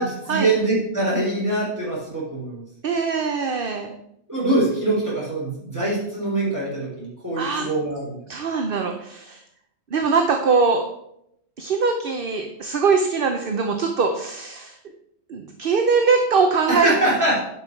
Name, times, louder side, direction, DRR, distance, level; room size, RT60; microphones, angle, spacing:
voice 1, 0.0-2.6 4.3-8.2 16.7-17.4, right 2 dB, 15° right, -6 dB, 3.9 m, -23 dB
voice 2, 2.8-3.9 7.4-7.7 8.3-9.4 9.9-10.8 11.6-14.8 15.3-16.9, right 4 dB, 55° right, 4 dB, 1.0 m, -22 dB
11.0 x 5.6 x 4.6 m, 0.76 s
omnidirectional pair, 1.2 m